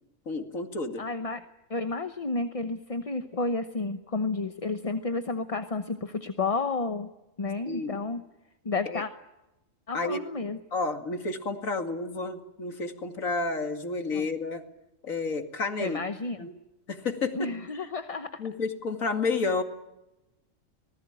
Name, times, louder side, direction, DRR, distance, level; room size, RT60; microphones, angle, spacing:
voice 1, 0.3-1.0 7.7-8.0 8.9-9.0 9.9-10.2 10.7-14.6 15.0-16.0 16.4-16.5 16.9-17.9 18.4-19.6, left 3 dB, 85° left, 6 dB, 2.7 m, -31 dB
voice 2, 1.0-1.4 1.7-7.1 7.4-8.2 8.6-9.1 9.9-10.6 14.1-14.3 15.8-16.5 17.3-18.4, left 3 dB, 30° left, 8 dB, 0.9 m, -31 dB
25.0 x 19.5 x 8.9 m, 0.94 s
omnidirectional pair, 1.4 m